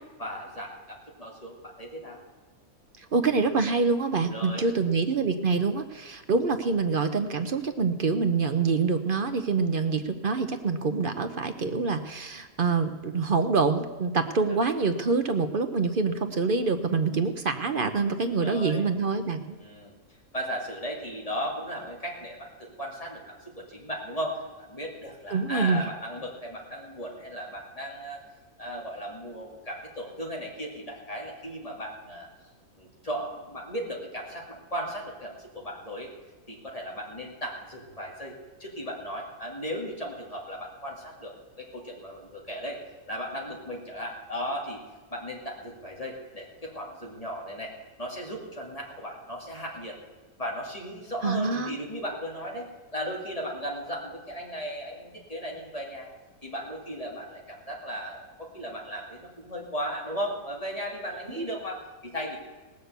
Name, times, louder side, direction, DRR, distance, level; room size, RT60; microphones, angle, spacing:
voice 1, 0.2-2.2 4.3-4.6 18.2-18.8 19.6-19.9 20.3-28.2 28.6-32.3 32.8-36.1 36.5-38.3 38.6-42.8 43.1-44.8 45.1-47.7 48.0-50.0 50.4-56.1 56.4-62.4, equal, 25° left, -2 dB, 2.6 m, -36 dB
voice 2, 3.1-19.6 25.3-25.8 51.2-51.7 61.4-61.5, right 4 dB, 45° right, 8 dB, 0.8 m, -26 dB
18.0 x 6.6 x 8.1 m, 1.2 s
omnidirectional pair, 1.5 m